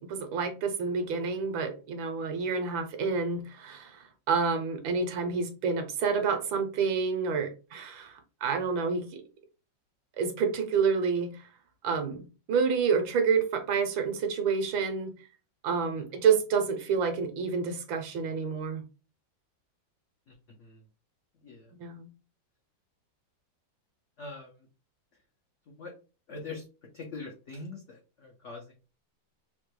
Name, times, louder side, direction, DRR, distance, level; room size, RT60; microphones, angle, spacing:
voice 1, 0.0-8.1 8.4-9.1 10.2-11.3 11.8-12.2 12.5-15.1 15.6-18.8 21.8-22.1, right 5 dB, 80° right, 1.5 m, -28 dB
voice 2, 20.3-20.8 21.4-21.7 24.2-24.7 25.7-25.9 26.3-26.6 26.9-28.7, left 3 dB, 80° left, 0.6 m, -43 dB
3.6 x 2.2 x 3.0 m
omnidirectional pair, 2.1 m